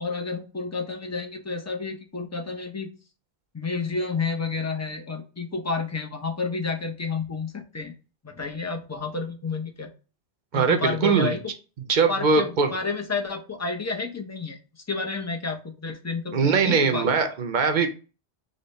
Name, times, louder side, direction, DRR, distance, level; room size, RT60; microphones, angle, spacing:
voice 1, 0.0-2.9 3.5-7.9 8.2-9.9 10.5-11.4 12.1-14.6 14.9-17.1, left 4 dB, 25° left, 3 dB, 0.3 m, -30 dB
voice 2, 10.5-11.3 11.9-12.7 16.3-17.9, right 5 dB, 55° right, 7 dB, 0.6 m, -21 dB
5.1 x 2.1 x 3.9 m, 0.34 s
omnidirectional pair, 1.1 m